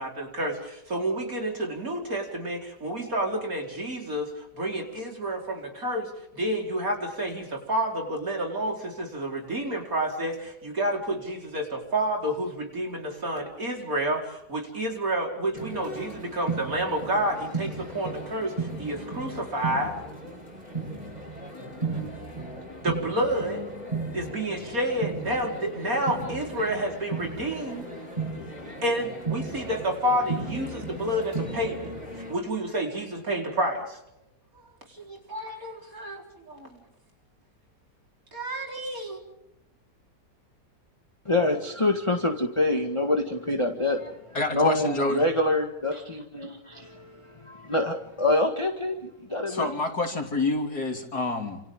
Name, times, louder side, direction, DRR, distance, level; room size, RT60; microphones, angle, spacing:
voice 1, 0.0-20.0 22.8-23.6 24.1-27.9 28.8-31.9 32.3-34.0 34.9-36.2 36.5-36.7 38.3-39.2, right 1 dB, 50° right, 1 dB, 4.9 m, -29 dB
sound 1, 15.5-32.3, right 3 dB, 20° right, 8.4 m, -35 dB
voice 2, 41.2-44.2 44.5-49.7, left 2 dB, 15° left, 4 dB, 1.8 m, -26 dB
voice 3, 44.3-45.2 49.5-51.6, left 2 dB, 55° left, 3 dB, 3.8 m, -27 dB
29.5 x 27.5 x 3.8 m, 0.85 s
omnidirectional pair, 2.0 m